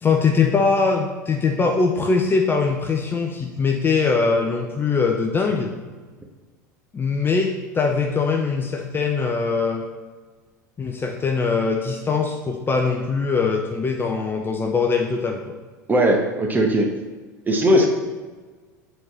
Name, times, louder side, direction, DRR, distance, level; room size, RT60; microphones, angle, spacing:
voice 1, 0.0-5.7 6.9-9.8 10.8-15.5, left 4 dB, 20° left, 3 dB, 0.6 m, -22 dB
voice 2, 15.9-16.9 17.4-17.9, equal, 20° right, 2 dB, 1.3 m, -18 dB
7.9 x 4.1 x 4.3 m, 1.4 s
figure-of-eight pair, 80°, 10 cm